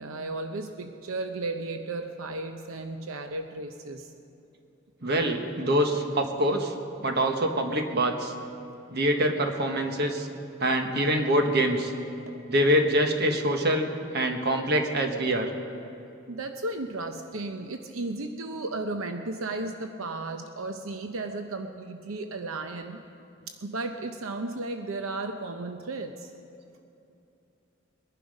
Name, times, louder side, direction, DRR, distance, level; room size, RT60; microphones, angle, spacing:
voice 1, 0.0-4.1 16.3-23.0 23.6-26.3, right 2 dB, 90° right, 6 dB, 0.8 m, -34 dB
voice 2, 5.0-6.7 7.0-8.3 8.9-10.3 10.6-11.9 12.5-15.5, right 1 dB, 50° right, 4 dB, 1.4 m, -25 dB
21.5 x 11.0 x 5.3 m, 2.7 s
head